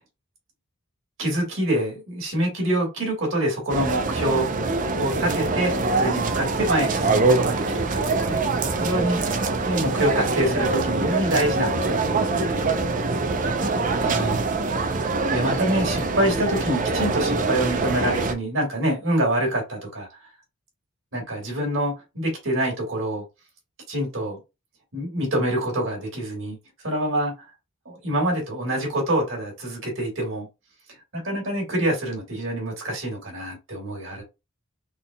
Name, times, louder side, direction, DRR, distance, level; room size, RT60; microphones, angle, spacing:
voice 1, 1.2-4.5 5.0-12.7 14.0-14.4 15.3-20.1 21.1-23.2 23.9-24.4 24.9-26.6 26.8-27.3 27.9-30.5 31.1-34.2, right 1 dB, 70° right, 2.0 m, -26 dB
sound 1, 3.7-18.3, right 3 dB, 40° right, 0.6 m, -24 dB
4.1 x 3.5 x 2.2 m
head